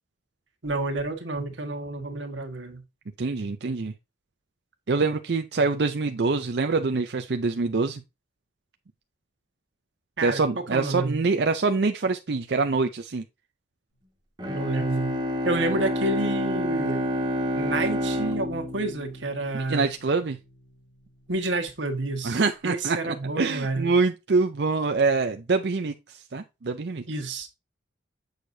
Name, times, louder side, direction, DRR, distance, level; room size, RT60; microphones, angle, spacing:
voice 1, 0.6-2.8 10.2-10.4 10.7-11.2 14.5-15.2 15.4-17.1 17.6-19.9 21.3-24.0 27.1-27.5, right 2 dB, 85° right, 1.5 m, -29 dB
voice 2, 3.2-3.9 4.9-8.0 10.2-13.2 19.5-20.4 22.2-27.0, right 4 dB, 60° right, 0.5 m, -25 dB
Bowed string instrument, 14.4-19.9, equal, 25° right, 1.6 m, -29 dB
8.0 x 6.4 x 2.7 m
head